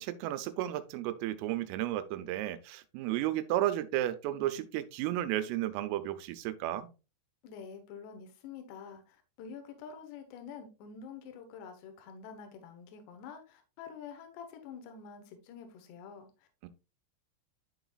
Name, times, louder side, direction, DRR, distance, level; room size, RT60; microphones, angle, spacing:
voice 1, 0.0-6.9 16.6-16.7, right 13 dB, 90° right, 3.3 m, -33 dB
voice 2, 7.4-16.5, left 6 dB, 70° left, 2.8 m, -47 dB
12.0 x 4.0 x 2.4 m
omnidirectional pair, 5.8 m